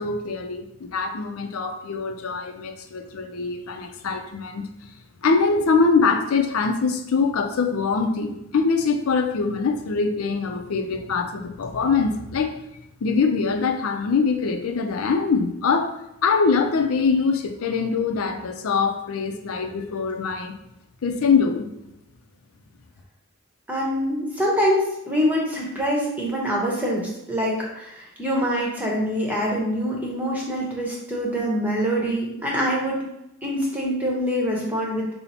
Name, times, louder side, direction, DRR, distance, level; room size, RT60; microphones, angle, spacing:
voice 1, 0.0-4.7 5.2-12.5 13.0-15.9 16.2-20.5 21.0-21.7, left 4 dB, 80° left, 5 dB, 0.5 m, -23 dB
voice 2, 23.7-33.1 33.4-35.1, equal, 5° right, -3 dB, 0.9 m, -25 dB
5.6 x 2.0 x 4.2 m, 0.86 s
head